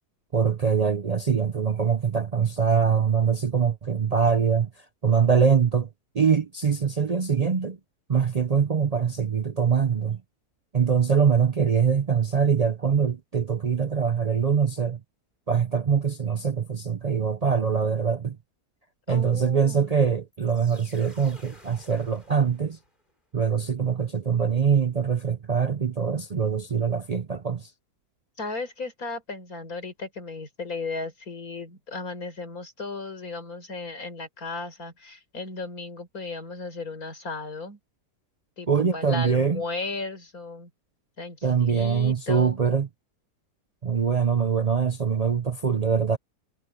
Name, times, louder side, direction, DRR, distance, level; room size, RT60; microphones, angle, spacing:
voice 1, 0.3-4.7 5.0-5.9 6.1-7.8 8.1-10.2 10.7-15.0 15.5-18.4 19.1-22.8 23.3-27.7 38.7-39.6 41.4-42.9 43.8-46.2, right 6 dB, 85° right, 0.3 m, -23 dB
voice 2, 19.1-20.0 28.4-37.8 38.6-40.7 41.2-42.6, left 3 dB, 60° left, 4.8 m, -35 dB
sound 1, 20.3-23.1, left 1 dB, 30° left, 6.0 m, -52 dB
omnidirectional pair, 1.7 m